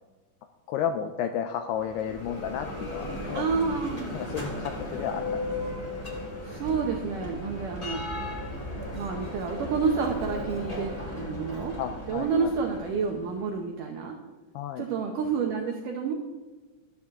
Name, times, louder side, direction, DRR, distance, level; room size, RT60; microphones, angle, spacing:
voice 1, 0.7-3.5 4.1-5.2 5.7-5.8 11.8-12.5 14.5-14.8, left 8 dB, 85° left, 7 dB, 2.3 m, -32 dB
Bell, 1.7-13.5, left 1 dB, 40° left, 0.5 m, -36 dB
voice 2, 3.3-4.0 6.4-8.0 8.9-11.8 12.1-14.2 14.8-16.1, right 5 dB, 80° right, 2 dB, 1.9 m, -29 dB
13.5 x 13.0 x 3.7 m, 1.3 s
omnidirectional pair, 5.3 m